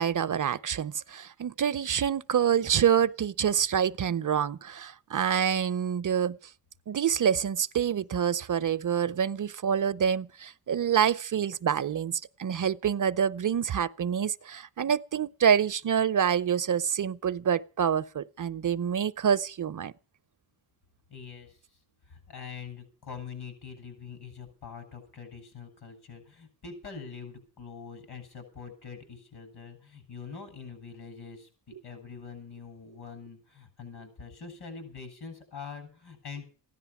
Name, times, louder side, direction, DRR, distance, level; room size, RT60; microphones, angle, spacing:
voice 1, 0.0-6.4 6.9-19.9, right 8 dB, 45° right, 0.7 m, -27 dB
voice 2, 21.1-21.8 22.1-36.4, left 6 dB, 65° left, 7.9 m, -44 dB
16.0 x 11.0 x 7.1 m
cardioid pair, 105°, 42 cm